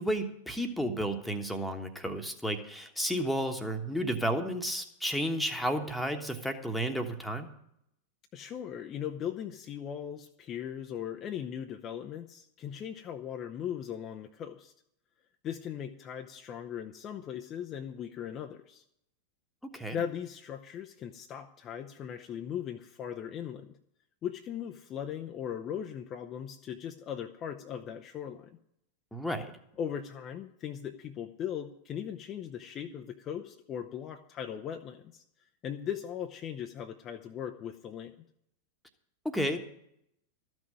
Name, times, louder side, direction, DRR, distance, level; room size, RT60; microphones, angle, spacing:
voice 1, 0.0-7.5 19.7-20.0 29.1-29.5 39.2-39.6, equal, ahead, 5 dB, 1.3 m, -32 dB
voice 2, 8.3-14.7 15.4-18.8 19.9-23.7 24.2-28.6 29.8-35.2 35.6-38.1, left 9 dB, 30° left, 4 dB, 0.7 m, -39 dB
13.5 x 6.2 x 8.8 m, 0.74 s
figure-of-eight pair, 90°, 0 cm